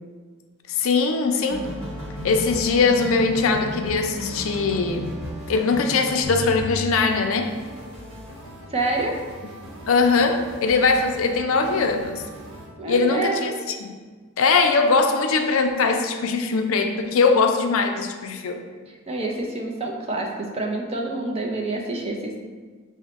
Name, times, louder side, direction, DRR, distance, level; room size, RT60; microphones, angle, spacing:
voice 1, 0.7-1.7 2.2-5.1 5.5-7.5 9.9-12.2 12.9-13.9 14.4-18.7, left 4 dB, 65° left, 5 dB, 0.4 m, -21 dB
sound 1, 1.5-12.7, left 1 dB, 60° right, 1.3 m, -35 dB
voice 2, 8.7-9.2 12.8-13.6 18.9-22.4, right 2 dB, 25° right, 0 dB, 0.5 m, -27 dB
6.0 x 2.1 x 4.0 m, 1.5 s
head